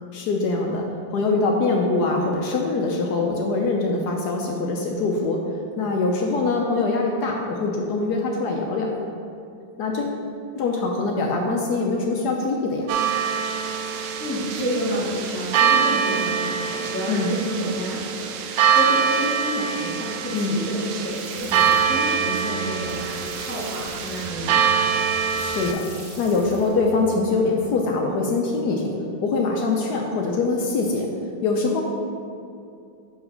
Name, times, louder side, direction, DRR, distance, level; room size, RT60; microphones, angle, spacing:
voice 1, 0.1-8.9 9.8-10.2 10.6-12.9 17.1-17.3 20.3-20.6 25.3-25.8 26.2-28.9 29.2-31.1 31.4-31.8, left 3 dB, 75° left, 0 dB, 0.9 m, -23 dB
sound 1, 12.9-25.7, right 7 dB, 75° right, 1.1 m, -24 dB
voice 2, 14.2-24.9, equal, 10° left, -9 dB, 0.9 m, -30 dB
sound 2, 21.1-27.4, right 3 dB, 55° right, 1.8 m, -41 dB
6.3 x 4.8 x 5.3 m, 2.5 s
omnidirectional pair, 2.4 m